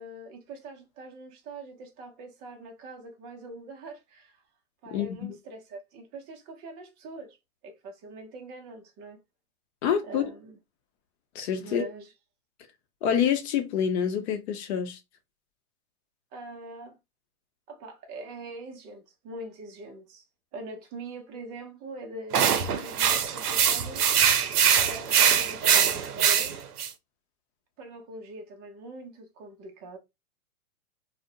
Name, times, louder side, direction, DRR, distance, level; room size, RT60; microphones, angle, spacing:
voice 1, 0.0-4.4 4.8-7.4 7.6-9.2 10.0-10.6 11.6-12.1 16.3-17.0 17.7-20.2 20.5-24.1 24.8-26.7 27.8-30.0, right 2 dB, 20° right, 0.5 m, -43 dB
voice 2, 4.9-5.4 9.8-10.2 11.3-11.8 13.0-15.0, left 8 dB, 45° left, 0.7 m, -27 dB
sound 1, 22.3-26.9, right 8 dB, 90° right, 0.6 m, -23 dB
2.4 x 2.1 x 2.6 m
hypercardioid pair, 125°, 44 cm